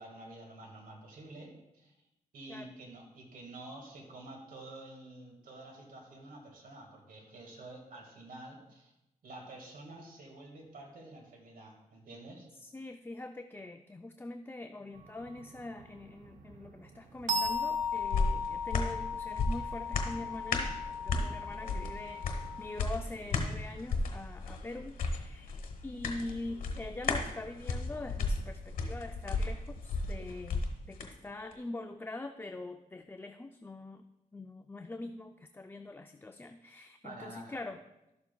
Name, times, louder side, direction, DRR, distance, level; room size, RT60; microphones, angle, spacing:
voice 1, 0.0-2.1 2.3-8.9 9.2-12.5 37.0-37.6, right 2 dB, 90° right, 0 dB, 1.7 m, -49 dB
voice 2, 12.6-20.8 21.0-34.0 34.3-37.8, left 2 dB, 15° left, 7 dB, 0.4 m, -43 dB
sound 1, 15.0-22.8, left 4 dB, 70° right, 0.6 m, -37 dB
sound 2, 17.4-31.1 31.5-31.6, left 3 dB, 90° left, 1.0 m, -35 dB
12.5 x 7.0 x 2.2 m, 0.89 s
cardioid pair, 75°, 14 cm